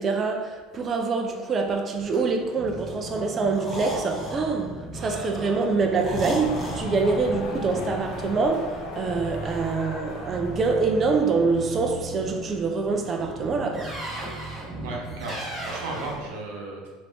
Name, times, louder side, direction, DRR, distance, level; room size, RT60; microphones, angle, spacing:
voice 1, 0.0-13.9, right 4 dB, 30° right, 0.4 m, -25 dB
sound 1, 1.9-16.3, right 1 dB, 10° right, 0.8 m, -36 dB
sound 2, 6.4-12.6, left 2 dB, 60° left, 0.7 m, -40 dB
voice 2, 14.8-16.9, right 2 dB, 85° right, 0.8 m, -35 dB
2.9 x 2.6 x 3.3 m
cardioid pair, 140°, 0 cm